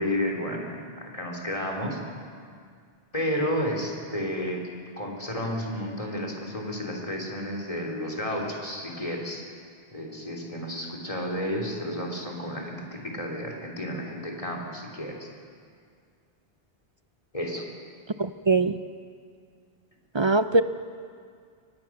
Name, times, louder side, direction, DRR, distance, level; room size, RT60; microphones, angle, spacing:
voice 1, 0.0-2.0 3.1-4.6 5.0-9.4 9.9-15.3 17.3-17.7, equal, 35° left, 1 dB, 3.2 m, -31 dB
voice 2, 18.2-18.7 20.1-20.6, right 3 dB, 40° right, 11 dB, 0.4 m, -21 dB
23.0 x 19.0 x 6.0 m, 2.1 s
omnidirectional pair, 1.0 m